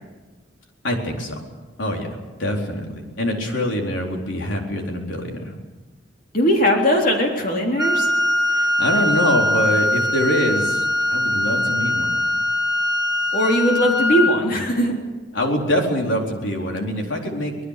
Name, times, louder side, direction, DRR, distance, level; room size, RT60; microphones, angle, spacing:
voice 1, 0.8-1.4 1.8-5.6 8.5-12.2 15.3-17.6, left 1 dB, 90° left, 1 dB, 4.2 m, -24 dB
voice 2, 6.3-8.1 13.3-14.9, equal, 45° left, 0 dB, 3.5 m, -19 dB
Wind instrument woodwind instrument, 7.8-14.4, left 1 dB, 20° right, 2.7 m, -21 dB
25.0 x 19.5 x 6.7 m, 1.3 s
head